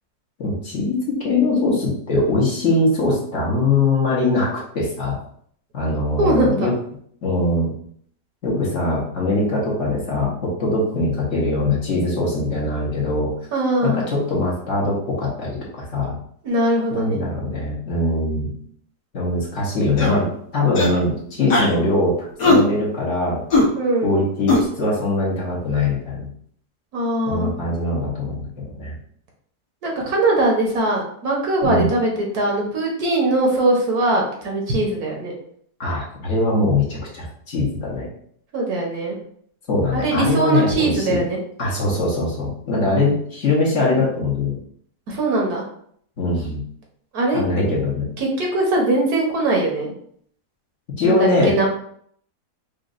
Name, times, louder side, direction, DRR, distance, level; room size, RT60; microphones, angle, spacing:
voice 1, 0.4-5.2 5.7-6.7 7.2-7.7 8.4-13.3 13.8-16.1 16.9-18.5 19.1-23.4 24.0-26.3 27.3-28.4 28.8-29.0 31.6-31.9 35.8-38.1 39.7-41.2 41.6-44.6 46.2-46.6 47.3-48.1 51.0-51.5, left 2 dB, 50° left, -5 dB, 1.3 m, -22 dB
voice 2, 6.2-6.7 13.5-14.0 16.4-17.2 23.7-24.1 26.9-27.5 29.8-35.3 38.5-39.1 39.9-41.4 45.1-45.6 47.1-47.4 48.2-49.9 51.0-51.7, right 2 dB, 70° right, -1 dB, 1.4 m, -21 dB
sound 1, 20.0-20.2 20.7-21.0 21.5-21.7 22.4-22.6 23.5-23.6 24.5-24.6, left 2 dB, 90° left, 1.6 m, -17 dB
5.1 x 2.5 x 2.4 m, 0.64 s
omnidirectional pair, 1.7 m